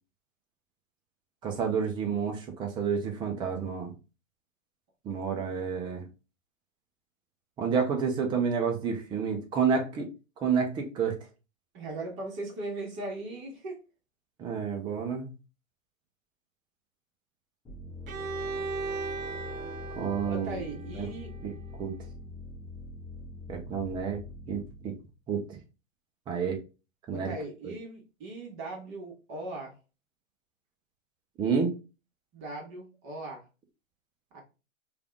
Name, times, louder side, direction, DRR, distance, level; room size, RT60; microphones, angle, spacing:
voice 1, 1.4-3.9 5.0-6.0 7.6-10.1 10.4-11.2 14.4-15.3 19.9-20.6 21.0-21.1 21.4-21.5 21.8-21.9 23.5-24.2 24.5-24.9 25.3-25.6 26.3-26.6 27.1-27.3 27.6-27.7 31.4-31.7, right 6 dB, 10° right, 3 dB, 0.5 m, -29 dB
voice 2, 11.7-13.8 20.2-21.3 27.1-29.7 32.3-33.5 34.3-34.4, right 2 dB, 30° right, 0 dB, 1.4 m, -39 dB
sound 1, 17.7-25.1, left 2 dB, 10° left, 0.9 m, -43 dB
Bowed string instrument, 18.1-21.9, right 4 dB, 80° right, 0.6 m, -38 dB
3.4 x 2.4 x 3.5 m, 0.30 s
figure-of-eight pair, 115°, 40 cm